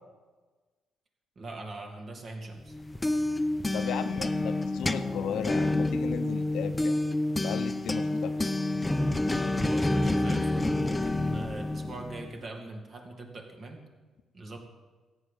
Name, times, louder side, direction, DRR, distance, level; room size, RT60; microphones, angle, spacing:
voice 1, 1.4-2.8 9.6-13.8 14.3-14.6, right 2 dB, 50° right, 3 dB, 2.7 m, -41 dB
sound 1, 2.7-12.3, left 2 dB, 15° left, 0.8 m, -28 dB
voice 2, 3.7-7.0 7.4-8.5, left 8 dB, 80° left, 9 dB, 0.9 m, -36 dB
14.0 x 9.2 x 7.5 m, 1.3 s
cardioid pair, 90°, 0 cm